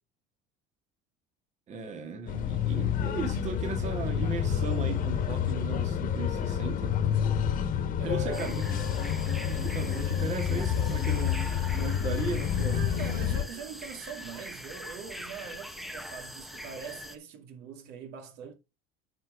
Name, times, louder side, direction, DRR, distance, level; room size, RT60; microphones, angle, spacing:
voice 1, 1.7-7.0 8.0-8.6 9.4-12.9, right 5 dB, 40° right, 2.0 m, -37 dB
sound 1, 2.3-13.4, left 9 dB, 50° left, 1.7 m, -29 dB
voice 2, 8.0-8.9 12.7-18.5, right 7 dB, 70° right, 2.4 m, -43 dB
sound 2, 8.3-17.2, equal, ahead, 1.0 m, -42 dB
9.1 x 4.6 x 5.0 m
cardioid pair, 115°, 18 cm